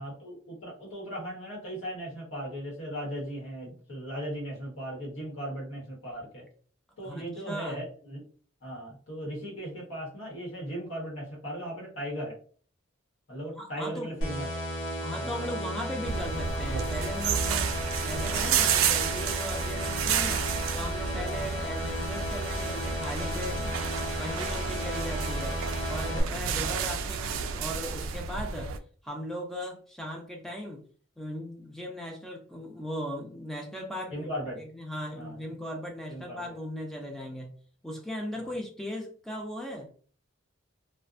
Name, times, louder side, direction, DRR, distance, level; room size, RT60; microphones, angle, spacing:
voice 1, 0.0-6.5 7.0-8.2 8.6-12.4 13.3-14.7 15.1-15.7 21.3-21.5 26.3-26.5 34.1-34.6 35.2-35.4 36.1-36.5 38.4-38.5, equal, 90° left, -3 dB, 1.2 m, -38 dB
voice 2, 7.0-7.8 13.5-14.2 15.0-17.7 18.0-20.4 20.7-25.6 25.9-28.7 29.0-30.8 31.2-34.3 34.7-37.5 37.8-39.9, equal, ahead, 0 dB, 0.5 m, -38 dB
sound 1, 14.2-26.2, left 1 dB, 65° left, 0.6 m, -34 dB
sound 2, 16.0-28.8, right 7 dB, 85° right, 0.3 m, -31 dB
2.5 x 2.2 x 2.5 m, 0.43 s
head